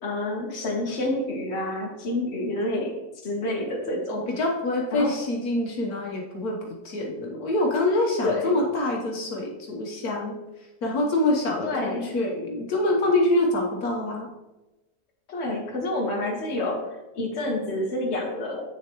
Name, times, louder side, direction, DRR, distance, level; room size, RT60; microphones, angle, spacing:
voice 1, 0.0-2.9 3.2-4.2 4.9-5.2 8.2-8.5 11.6-12.1 15.3-18.7, left 1 dB, 45° left, 0 dB, 1.6 m, -28 dB
voice 2, 4.1-10.4 10.8-14.3, left 2 dB, 75° left, 0 dB, 1.6 m, -25 dB
8.8 x 6.7 x 3.0 m, 1.0 s
omnidirectional pair, 1.6 m